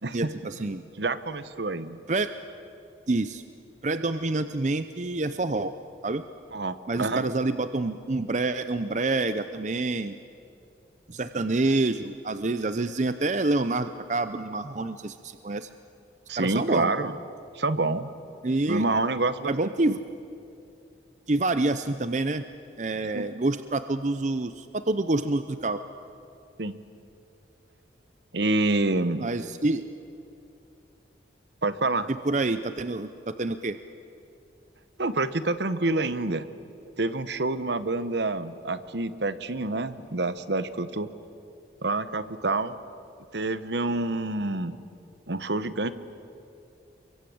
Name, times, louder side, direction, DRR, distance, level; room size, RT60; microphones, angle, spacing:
voice 1, 0.1-0.8 2.1-2.4 3.1-3.4 3.8-5.7 6.0-6.2 6.9-10.2 11.1-15.7 16.4-16.9 18.4-18.9 19.4-20.0 21.3-22.4 22.8-25.8 29.2-29.9 32.1-33.8, right 2 dB, 40° right, 11 dB, 0.6 m, -27 dB
voice 2, 1.0-2.0 6.5-7.2 16.3-17.1 17.5-18.1 18.7-19.5 23.1-23.2 26.6-26.7 28.3-29.3 31.6-32.1 35.0-36.5 37.0-41.1 41.8-42.8 43.3-44.8 45.3-45.9, right 2 dB, 70° right, 13 dB, 1.1 m, -27 dB
28.5 x 23.0 x 8.6 m, 2.6 s
head